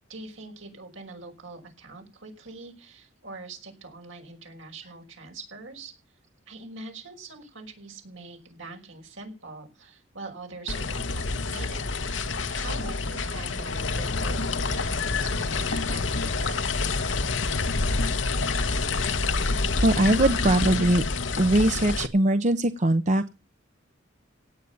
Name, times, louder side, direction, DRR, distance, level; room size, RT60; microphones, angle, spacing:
voice 1, 0.1-5.9 6.5-11.9 12.5-16.8, right 3 dB, 80° right, 2 dB, 5.7 m, -43 dB
sound 1, 10.7-22.1, left 3 dB, 70° left, 1.2 m, -27 dB
voice 2, 19.8-21.0 21.4-23.3, right 1 dB, 40° right, 10 dB, 0.7 m, -21 dB
17.5 x 9.0 x 7.1 m, 0.32 s
head